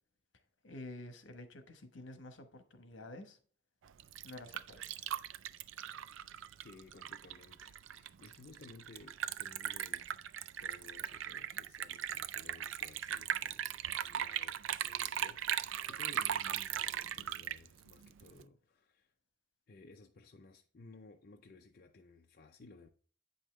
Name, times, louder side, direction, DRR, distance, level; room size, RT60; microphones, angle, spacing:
voice 1, 0.6-3.4 4.2-5.1, left 2 dB, 70° left, 1.1 m, -50 dB
Liquid, 3.9-18.4, right 10 dB, 80° right, 0.4 m, -39 dB
voice 2, 6.6-10.1 10.6-19.1 19.7-22.9, left 3 dB, 50° left, 0.5 m, -57 dB
8.5 x 5.5 x 3.1 m
head